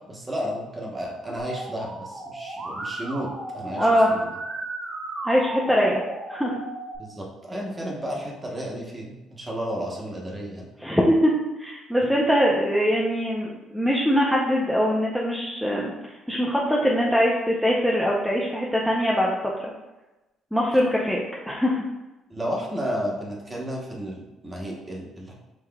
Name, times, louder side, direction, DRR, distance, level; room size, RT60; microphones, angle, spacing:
voice 1, 0.1-4.4 7.0-10.6 22.3-25.3, equal, 20° right, -2 dB, 0.9 m, -32 dB
Musical instrument, 1.4-7.0, right 2 dB, 40° right, 1.1 m, -35 dB
voice 2, 3.8-4.1 5.2-6.0 6.3-6.6 10.8-11.3 11.6-19.7 20.5-21.8, equal, ahead, -4 dB, 0.5 m, -22 dB
5.6 x 3.0 x 2.2 m, 1.0 s
cardioid pair, 125°, 0 cm